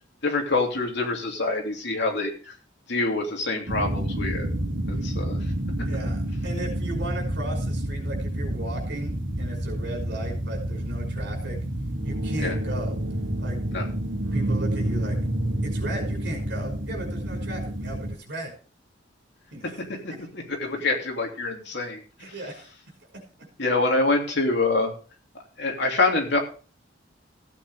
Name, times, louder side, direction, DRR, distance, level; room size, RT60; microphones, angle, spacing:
voice 1, 0.2-2.5 2.9-4.5 4.9-5.4 12.4-12.5 13.7-13.9 19.8-22.0 23.6-24.9 25.6-26.4, left 3 dB, 60° left, 1 dB, 3.1 m, -26 dB
sound 1, 3.7-18.1, right 1 dB, 80° right, 2.9 m, -29 dB
voice 2, 5.9-11.6 12.0-12.9 13.4-13.6 14.3-15.2 15.6-18.6 19.5-19.8 20.1-20.2 22.2-22.7, right 1 dB, 65° right, 3 dB, 5.5 m, -36 dB
15.5 x 8.8 x 3.5 m, 0.37 s
head